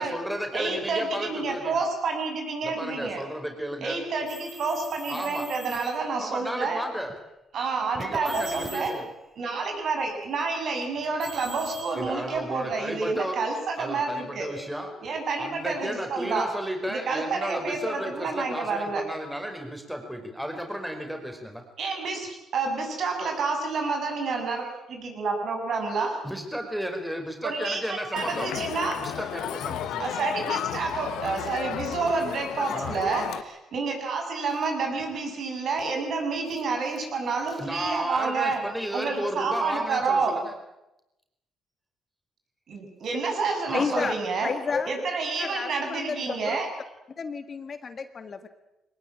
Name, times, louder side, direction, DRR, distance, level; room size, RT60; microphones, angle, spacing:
voice 1, 0.0-1.8 2.6-4.0 5.1-5.5 6.1-7.2 7.9-9.1 11.9-13.4 13.8-14.9 15.4-21.6 26.2-28.5 29.0-30.1 32.7-33.0 37.5-40.5 43.7-44.1, equal, 5° right, 4 dB, 5.2 m, -33 dB
voice 2, 0.5-3.2 3.8-6.8 7.5-9.0 9.4-14.5 15.0-16.5 16.9-19.0 21.8-26.2 27.4-29.0 30.0-38.6 38.9-40.3 42.7-44.5 44.9-46.7, right 4 dB, 60° right, 3 dB, 7.3 m, -29 dB
sound 1, 4.3-6.0 6.8-7.2 7.9-9.0 10.8-12.9, right 1 dB, 25° right, 7.5 m, -42 dB
Crowd, 28.2-33.4, left 11 dB, 85° left, 1.3 m, -33 dB
voice 3, 43.7-44.1 44.4-44.9 45.4-46.6 47.2-48.5, left 5 dB, 40° left, 9 dB, 1.9 m, -31 dB
22.5 x 19.5 x 8.9 m, 0.92 s
cardioid pair, 90°, 0 cm